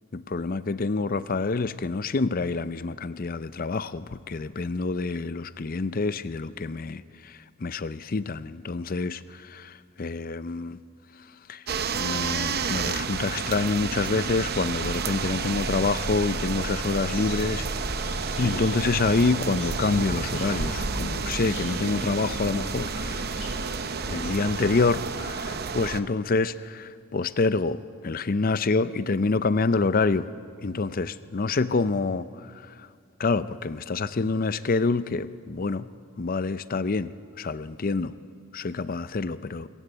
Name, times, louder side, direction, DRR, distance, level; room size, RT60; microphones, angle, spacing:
voice 1, 0.1-10.8 11.5-11.6 11.9-17.7 18.4-23.3 24.1-30.3 30.6-32.9 33.2-35.9 36.2-38.1 38.5-39.7, left 3 dB, 40° left, 15 dB, 0.5 m, -27 dB
sound 1, 11.7-26.0, right 5 dB, 45° right, 0.7 m, -30 dB
sound 2, 14.4-24.5, left 1 dB, 65° left, 4.6 m, -40 dB
25.0 x 14.5 x 8.1 m, 2.3 s
head